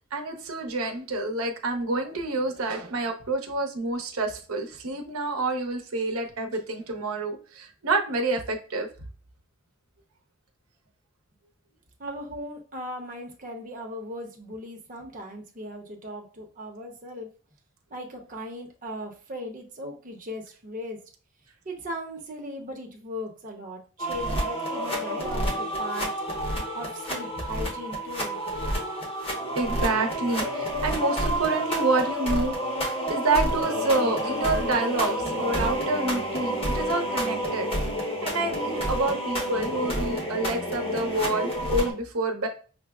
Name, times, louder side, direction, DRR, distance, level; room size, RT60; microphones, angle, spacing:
voice 1, 0.1-8.9 29.6-32.5 32.8-37.7 38.2-42.5, right 2 dB, 85° right, 4 dB, 0.7 m, -28 dB
voice 2, 12.0-17.3 17.9-21.0 21.6-26.1 26.7-28.4, equal, 40° right, 1 dB, 0.8 m, -38 dB
sound 1, 24.0-41.9, equal, 25° left, 1.0 m, -29 dB
5.8 x 2.0 x 2.3 m, 0.38 s
head